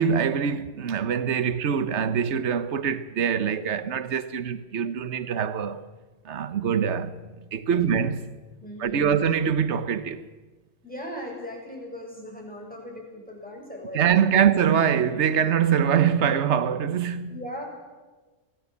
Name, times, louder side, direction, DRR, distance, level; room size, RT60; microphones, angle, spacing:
voice 1, 0.0-5.8 6.2-7.2 7.5-8.2 8.8-10.2 13.9-17.4, right 8 dB, 65° right, 1.3 m, -24 dB
voice 2, 8.6-9.2 10.8-14.4 17.3-17.6, equal, 5° left, 7.3 m, -38 dB
26.5 x 16.5 x 8.5 m
omnidirectional pair, 1.3 m